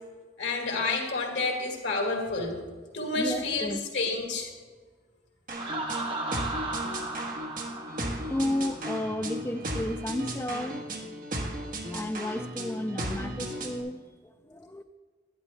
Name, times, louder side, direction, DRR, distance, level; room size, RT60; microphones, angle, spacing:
voice 1, 0.4-2.6 2.9-4.5, left 3 dB, 90° left, 1 dB, 2.0 m, -29 dB
voice 2, 3.1-3.8 8.3-10.9 11.9-14.1 14.5-14.8, left 1 dB, 15° left, 9 dB, 0.4 m, -32 dB
sound 1, 5.5-13.8, right 1 dB, 50° right, 1.4 m, -35 dB
Laughter, 5.6-9.3, right 2 dB, 30° right, 1.1 m, -36 dB
11.0 x 10.0 x 3.2 m, 1.5 s
head